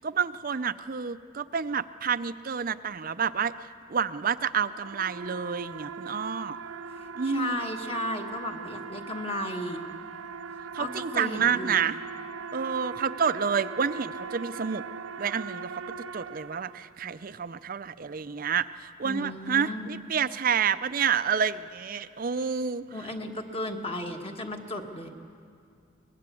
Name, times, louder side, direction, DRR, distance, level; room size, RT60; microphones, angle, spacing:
voice 1, 0.0-3.5 3.9-6.6 7.1-7.6 10.7-12.0 12.5-14.8 15.2-15.7 16.1-22.8, right 6 dB, 40° right, 14 dB, 0.5 m, -29 dB
sound 1, 4.4-17.1, right 5 dB, 90° right, 0.6 m, -40 dB
voice 2, 6.9-9.8 10.8-11.8 19.0-20.0 22.9-25.1, left 1 dB, 30° left, 3 dB, 1.4 m, -35 dB
23.0 x 19.5 x 8.4 m, 2.3 s
head